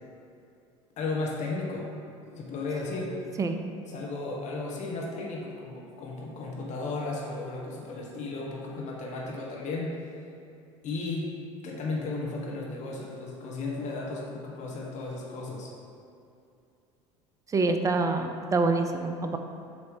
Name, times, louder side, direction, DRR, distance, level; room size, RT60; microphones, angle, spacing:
voice 1, 1.0-1.9 2.3-3.2 3.9-10.0 10.8-11.3 11.6-15.7, left 3 dB, 45° left, -3 dB, 1.2 m, -34 dB
voice 2, 17.5-19.4, right 3 dB, 20° right, 6 dB, 0.5 m, -26 dB
7.1 x 3.1 x 4.6 m, 2.6 s
hypercardioid pair, 70°, 16 cm